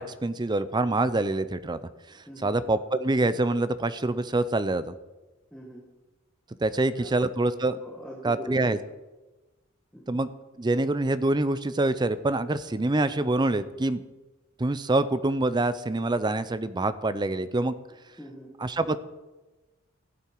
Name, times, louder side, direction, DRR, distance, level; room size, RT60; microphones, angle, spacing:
voice 1, 0.0-1.8 2.1-5.0 6.6-7.8 8.2-8.8 10.1-10.3 10.6-14.0 14.6-17.7 18.6-19.0, right 2 dB, 20° right, 14 dB, 0.5 m, -26 dB
voice 2, 5.5-5.8 7.0-7.1 7.8-8.6 9.9-10.2 18.2-18.5, equal, 5° left, -3 dB, 1.7 m, -41 dB
15.5 x 8.8 x 4.7 m, 1.1 s
head